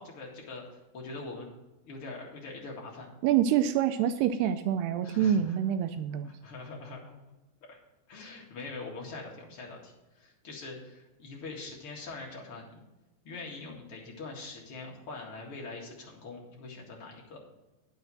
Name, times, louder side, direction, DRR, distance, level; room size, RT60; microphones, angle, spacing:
voice 1, 0.0-1.5 1.8-3.1 5.0-5.6 6.2-7.2 7.7-7.8 8.1-12.8 13.2-17.4, left 3 dB, 45° left, -2 dB, 2.1 m, -43 dB
voice 2, 3.2-6.3, right 9 dB, 85° right, 9 dB, 2.5 m, -26 dB
9.4 x 6.5 x 6.2 m, 1.1 s
omnidirectional pair, 4.9 m